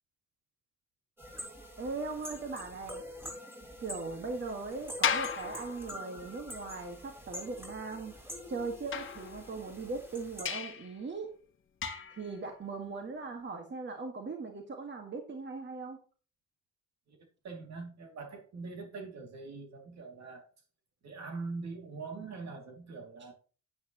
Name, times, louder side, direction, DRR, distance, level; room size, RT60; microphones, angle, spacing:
sound 1, 1.2-10.4, equal, 5° right, 3.8 m, -46 dB
voice 1, 1.8-3.1 3.8-8.1 8.5-11.3 12.1-16.0, right 3 dB, 40° right, 1.8 m, -39 dB
sound 2, 5.0-6.4 8.9-9.8 10.4-10.9 11.8-12.3, left 7 dB, 40° left, 1.2 m, -35 dB
voice 2, 17.4-20.5 21.0-23.3, right 4 dB, 60° right, 2.7 m, -43 dB
9.6 x 9.1 x 3.0 m
cardioid pair, 90°, 30 cm